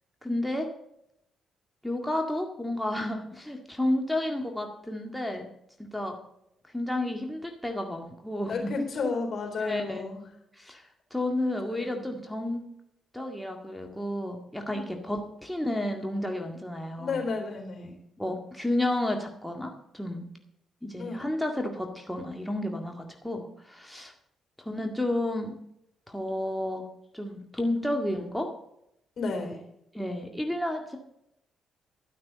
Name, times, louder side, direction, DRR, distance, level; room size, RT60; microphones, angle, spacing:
voice 1, 0.2-0.7 1.8-5.5 5.8-6.2 6.7-8.9 9.6-10.1 10.5-10.8 11.1-12.7 13.1-17.2 18.2-20.2 20.8-24.1 24.6-25.6 26.1-26.9 27.1-28.5 29.9-31.0, left 1 dB, 5° left, 2 dB, 2.0 m, -31 dB
voice 2, 8.5-10.2 11.7-11.9 14.7-14.8 17.0-18.0 21.0-21.3 29.2-29.6, left 4 dB, 60° left, 2 dB, 4.0 m, -32 dB
12.0 x 6.1 x 8.5 m, 0.79 s
supercardioid pair, 50°, 0 cm